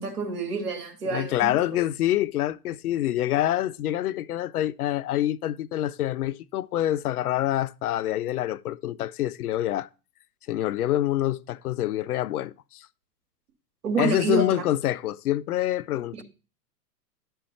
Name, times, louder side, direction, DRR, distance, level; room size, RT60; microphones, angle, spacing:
voice 1, 0.0-1.5 13.8-14.4, right 4 dB, 65° right, 2.4 m, -28 dB
voice 2, 1.1-9.9 10.5-12.9 14.0-16.2, left 13 dB, 65° left, 0.5 m, -26 dB
11.0 x 4.5 x 4.2 m
figure-of-eight pair, 105°, 49 cm